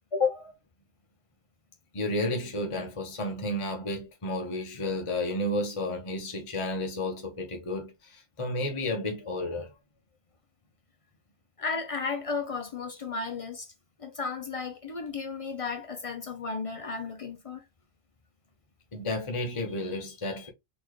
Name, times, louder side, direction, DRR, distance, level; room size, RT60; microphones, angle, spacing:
voice 1, 0.1-0.5 1.9-9.7 18.9-20.5, left 2 dB, 30° left, 0.8 m, -31 dB
voice 2, 11.6-13.7 14.0-17.6, left 4 dB, 60° left, 0.3 m, -34 dB
4.2 x 3.0 x 2.9 m
omnidirectional pair, 1.3 m